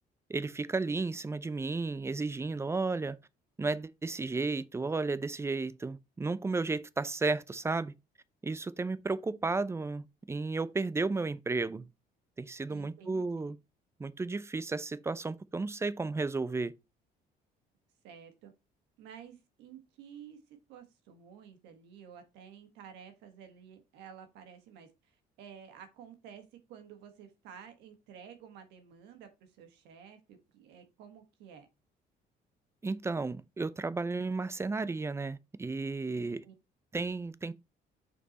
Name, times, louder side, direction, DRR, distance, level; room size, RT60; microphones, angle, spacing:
voice 1, 0.3-3.2 3.6-7.9 8.4-11.9 12.4-13.6 14.0-16.7 32.8-36.4 36.9-37.5, right 3 dB, 15° right, 0.5 m, -33 dB
voice 2, 12.7-13.6 18.0-18.5 19.0-20.4 20.7-31.7 36.4-36.5, right 8 dB, 90° right, 1.5 m, -52 dB
5.5 x 4.5 x 4.2 m
cardioid pair, 110°, 17 cm